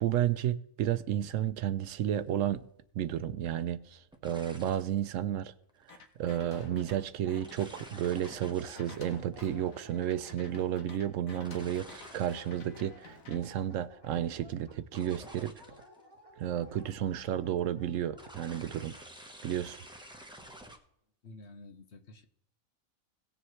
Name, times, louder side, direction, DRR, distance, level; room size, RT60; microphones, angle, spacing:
voice 1, 0.0-2.7 2.9-5.5 5.9-15.8 16.4-19.0 19.4-19.8, right 11 dB, 75° right, 0.9 m, -32 dB
sound 1, 2.2-2.4 4.1-5.0 5.7-6.0 7.4-10.4 11.4-12.6 12.9-13.5 14.9-16.0 16.4-17.0 18.2-20.8, equal, 5° right, 0.9 m, -50 dB
sound 2, 5.9-7.0 7.3-13.4, left 4 dB, 90° left, 1.6 m, -52 dB
Dog, 6.2-18.4, left 1 dB, 20° left, 1.1 m, -56 dB
voice 2, 21.2-22.3, left 2 dB, 55° left, 1.1 m, -50 dB
18.0 x 7.1 x 3.2 m
omnidirectional pair, 1.4 m